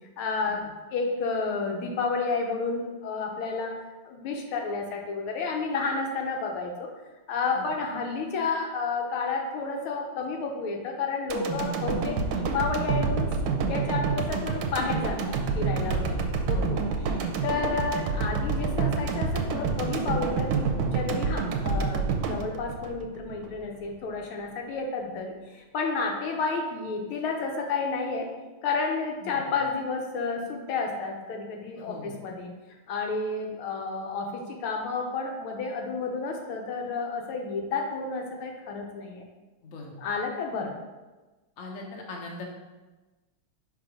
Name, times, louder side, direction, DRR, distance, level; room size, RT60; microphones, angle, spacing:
voice 1, 0.2-3.7 4.1-6.9 7.3-16.8 17.2-28.3 28.6-32.5 32.9-39.2 40.0-40.7, left 4 dB, 80° left, 1 dB, 1.7 m, -31 dB
sound 1, 11.3-23.5 23.9-24.0, right 4 dB, 75° right, 1.2 m, -28 dB
voice 2, 15.8-16.8 29.2-29.4 31.8-32.2 39.6-39.9 41.6-42.4, left 2 dB, 50° left, -1 dB, 1.1 m, -41 dB
5.2 x 3.7 x 5.0 m, 1.2 s
omnidirectional pair, 2.3 m